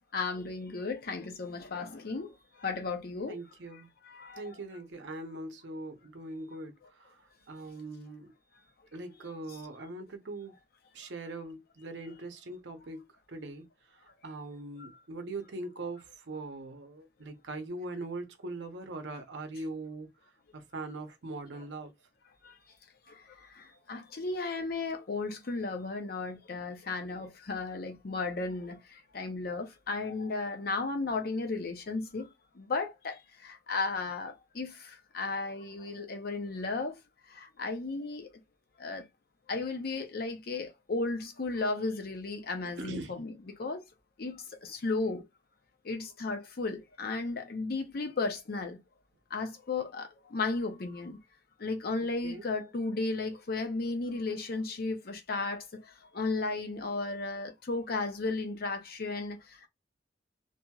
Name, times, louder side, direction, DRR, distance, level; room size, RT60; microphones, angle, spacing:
voice 1, 0.1-3.4 4.0-4.4 14.8-14.9 22.4-22.6 23.1-32.3 32.5-37.0 37.3-38.3 38.8-39.1 39.5-43.9 44.2-45.2 45.8-48.8 49.3-51.2 51.6-59.7, left 3 dB, 55° left, 0.6 m, -35 dB
voice 2, 3.3-3.9 4.4-7.2 7.5-8.3 8.9-10.5 10.9-13.7 14.2-20.1 20.5-21.9 42.8-43.2 52.2-52.5, right 2 dB, 70° right, 0.7 m, -41 dB
2.8 x 2.6 x 2.3 m
head